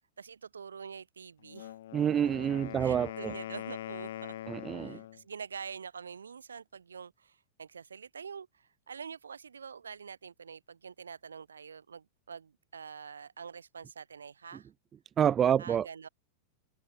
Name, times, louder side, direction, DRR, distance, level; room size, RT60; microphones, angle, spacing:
voice 1, 0.2-1.7 2.8-4.4 4.7-14.7 15.6-16.1, right 6 dB, 70° right, 7.7 m, -46 dB
Wind instrument woodwind instrument, 1.4-5.2, left 12 dB, 60° left, 3.9 m, -42 dB
voice 2, 1.9-3.3 4.5-5.0 15.2-15.9, right 9 dB, 25° right, 0.9 m, -28 dB
figure-of-eight pair, 90°, 0 cm